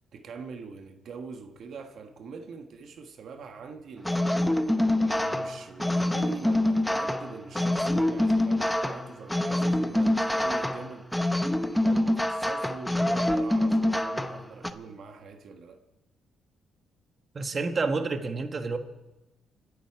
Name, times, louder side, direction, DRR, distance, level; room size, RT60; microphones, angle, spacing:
voice 1, 0.1-4.3 5.0-11.1 11.8-15.8, right 5 dB, 65° right, 1.4 m, -43 dB
sound 1, 4.0-14.7, left 1 dB, 5° left, 0.9 m, -26 dB
voice 2, 17.3-18.8, right 4 dB, 35° right, 1.5 m, -29 dB
26.0 x 11.0 x 4.7 m
cardioid pair, 90°, 0 cm